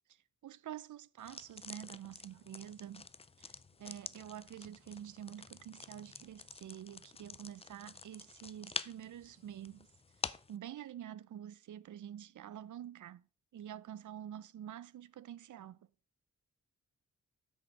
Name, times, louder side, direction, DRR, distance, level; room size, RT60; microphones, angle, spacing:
voice 1, 0.4-3.0 3.4-9.9 10.5-13.2 13.5-15.8, right 10 dB, 80° right, 0.5 m, -48 dB
sound 1, 1.2-10.6, left 4 dB, 20° left, 0.3 m, -48 dB
7.8 x 6.4 x 4.6 m
wide cardioid pair, 145°, 30 cm